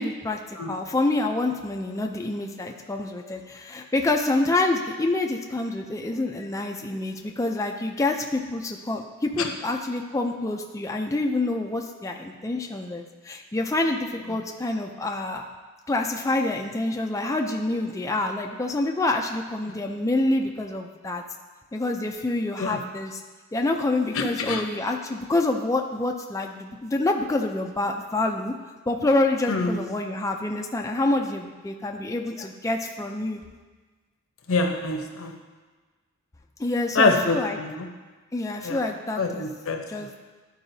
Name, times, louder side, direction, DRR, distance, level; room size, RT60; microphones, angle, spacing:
voice 1, 0.0-15.5 15.9-21.2 21.7-23.2 23.5-28.5 28.9-33.4 36.6-37.6 38.3-39.5 39.9-40.1, left 2 dB, 15° left, 2 dB, 0.4 m, -27 dB
voice 2, 24.1-24.6 29.5-29.8 34.5-35.3 36.9-37.9 38.6-38.8 39.2-39.8, left 3 dB, 65° left, 4 dB, 0.8 m, -25 dB
11.5 x 4.7 x 2.7 m, 1.3 s
head